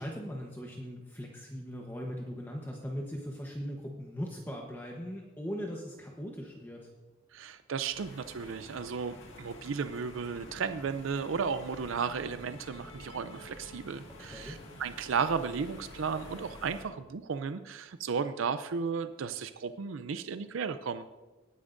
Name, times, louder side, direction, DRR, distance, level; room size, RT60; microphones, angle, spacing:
voice 1, 0.0-6.9 14.2-14.6, equal, 10° left, -1 dB, 1.0 m, -39 dB
voice 2, 7.3-21.0, right 5 dB, 80° right, 11 dB, 0.5 m, -34 dB
sound 1, 7.9-16.8, left 1 dB, 70° left, 1.8 m, -49 dB
18.5 x 9.8 x 2.6 m, 1.2 s
head